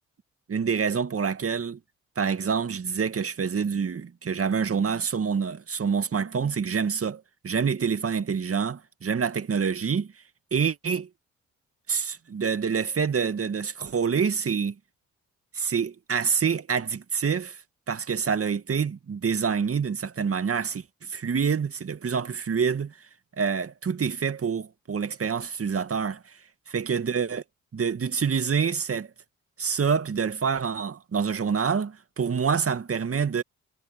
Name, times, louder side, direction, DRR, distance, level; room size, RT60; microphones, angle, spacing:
voice 1, 0.5-1.8 2.2-10.1 10.5-11.1 11.9-14.8 15.5-17.6 17.9-22.9 23.4-26.3 26.7-27.4 27.7-29.1 29.6-33.4, right 6 dB, 40° right, 2.3 m, -27 dB
hypercardioid pair, 45°, 35 cm